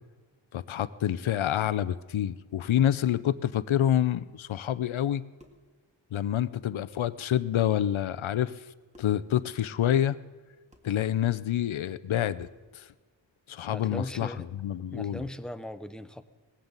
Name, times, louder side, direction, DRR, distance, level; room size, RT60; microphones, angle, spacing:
voice 1, 0.5-5.2 6.1-8.5 9.0-10.2 10.8-12.5 12.7-12.9 13.5-15.2, left 11 dB, 80° left, 15 dB, 0.6 m, -27 dB
sound 1, 5.4-5.7 6.9-7.0 7.3-7.6 8.9-9.3 10.7-11.0 12.4-12.7, left 1 dB, 15° right, 1.7 m, -56 dB
voice 2, 13.7-14.4 14.9-16.2, left 1 dB, ahead, 10 dB, 0.6 m, -38 dB
19.0 x 15.0 x 4.0 m, 1.3 s
wide cardioid pair, 85°, 47 cm